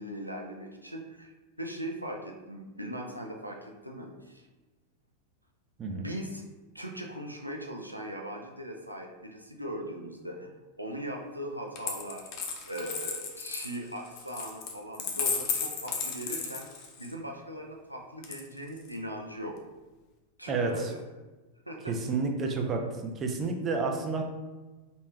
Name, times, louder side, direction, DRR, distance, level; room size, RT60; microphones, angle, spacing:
voice 1, 0.0-1.3 1.6-4.5 5.9-6.4 6.7-10.5 10.8-12.2 12.6-16.7 17.0-19.5 20.4-21.0 21.7-21.9, equal, 90° right, 0 dB, 0.4 m, -39 dB
Coin (dropping), 11.8-17.1 18.2-18.9, left 5 dB, 40° left, 0.5 m, -34 dB
voice 2, 20.5-20.9 21.9-24.2, right 4 dB, 25° right, 2 dB, 0.4 m, -30 dB
3.2 x 2.6 x 3.1 m, 1.2 s
figure-of-eight pair, 90°, 0 cm